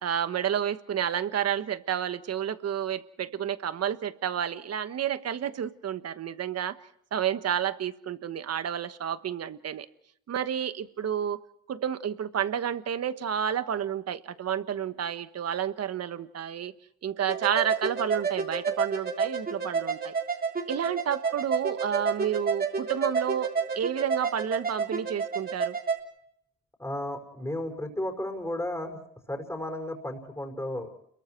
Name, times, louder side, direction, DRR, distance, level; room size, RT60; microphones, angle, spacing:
voice 1, 0.0-6.7 7.1-9.9 10.3-11.4 11.7-16.7 17.0-20.1 20.7-25.8, right 9 dB, 55° right, 12 dB, 1.4 m, -30 dB
sound 1, 17.3-26.0, right 5 dB, 30° right, 3.4 m, -30 dB
voice 2, 26.8-29.0 29.3-30.9, left 1 dB, 10° left, 4 dB, 5.3 m, -33 dB
29.5 x 22.5 x 4.6 m, 0.71 s
cardioid pair, 90°, 30 cm